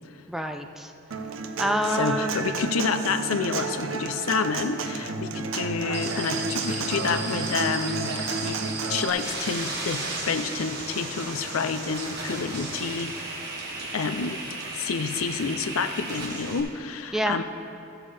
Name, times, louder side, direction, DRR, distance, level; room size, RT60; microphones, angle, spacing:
voice 1, 0.3-0.9 1.6-2.4 17.1-17.4, equal, ahead, 5 dB, 0.3 m, -27 dB
Human voice / Acoustic guitar, 1.1-9.1, right 4 dB, 75° right, 0.6 m, -31 dB
voice 2, 1.9-8.6 8.9-13.3 13.8-14.4 14.7-17.4, left 5 dB, 85° left, 10 dB, 0.5 m, -29 dB
sound 1, 5.9-16.6, right 3 dB, 50° right, 1.5 m, -34 dB
14.5 x 7.4 x 3.3 m, 2.9 s
head